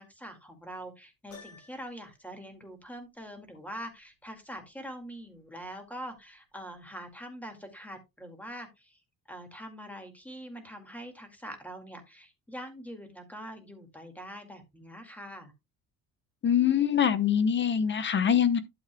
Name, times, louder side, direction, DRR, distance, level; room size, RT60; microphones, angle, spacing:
voice 1, 0.0-9.0 9.3-15.5, equal, 5° left, 2.0 m, -44 dB
Piano, 1.3-2.1, left 4 dB, 60° left, 6.2 m, -51 dB
voice 2, 16.4-18.6, left 8 dB, 30° left, 0.9 m, -24 dB
12.5 x 7.2 x 2.2 m
cardioid pair, 145°, 35 cm